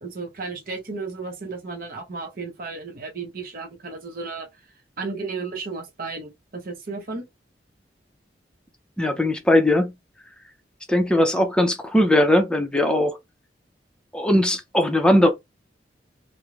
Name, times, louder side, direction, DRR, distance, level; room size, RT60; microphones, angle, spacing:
voice 1, 0.0-4.5 5.0-7.3, right 4 dB, 55° right, 0.7 m, -33 dB
voice 2, 9.0-9.9 10.9-13.2 14.1-15.3, left 1 dB, 5° left, 0.5 m, -19 dB
2.4 x 2.0 x 3.0 m
head